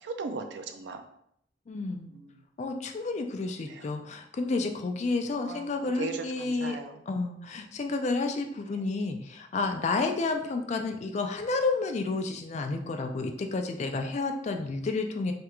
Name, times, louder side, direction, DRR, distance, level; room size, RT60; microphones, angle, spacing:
voice 1, 0.0-1.0 2.1-2.4 3.6-3.8 5.4-5.7 6.0-7.0 8.7-8.8, right 3 dB, 85° right, 6 dB, 0.4 m, -37 dB
voice 2, 1.7-2.1 2.6-6.8 7.1-15.3, left 3 dB, 40° left, 5 dB, 0.3 m, -30 dB
3.4 x 2.4 x 2.9 m, 0.72 s
head